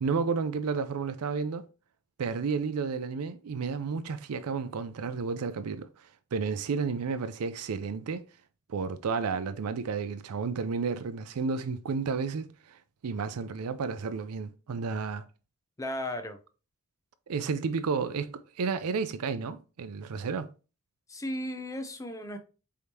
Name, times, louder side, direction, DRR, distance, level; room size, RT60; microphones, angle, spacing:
voice 1, 0.0-1.6 2.2-8.3 8.7-15.2 17.3-20.5, right 5 dB, 80° right, 0.4 m, -32 dB
voice 2, 15.8-16.4 21.1-22.4, left 1 dB, 15° left, 0.5 m, -35 dB
4.7 x 3.5 x 2.8 m
head